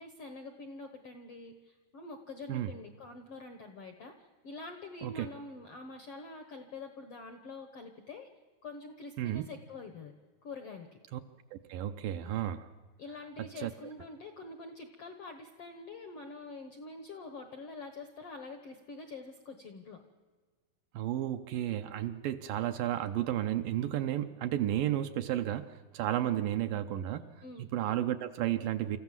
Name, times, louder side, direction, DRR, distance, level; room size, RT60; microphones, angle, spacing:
voice 1, 0.0-8.3 8.6-10.1 10.4-10.9 13.0-20.0 27.4-27.6, left 3 dB, 70° left, 7 dB, 1.4 m, -46 dB
voice 2, 11.5-12.7 13.6-13.7 20.9-27.3 27.6-29.0, right 12 dB, 75° right, 8 dB, 2.2 m, -32 dB
26.5 x 14.5 x 7.4 m, 1.4 s
omnidirectional pair, 4.4 m